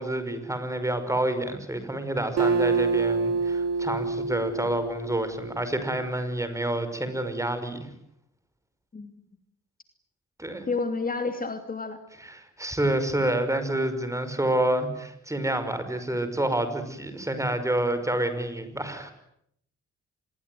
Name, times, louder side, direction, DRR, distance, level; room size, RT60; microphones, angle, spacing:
voice 1, 0.0-7.9 10.4-10.7 12.2-19.1, right 1 dB, 10° right, 10 dB, 5.5 m, -28 dB
Acoustic guitar, 2.4-6.0, right 4 dB, 60° right, 3.3 m, -27 dB
voice 2, 10.7-12.0, left 3 dB, 30° left, 8 dB, 2.8 m, -30 dB
26.0 x 22.0 x 9.5 m, 0.73 s
cardioid pair, 90°, 30 cm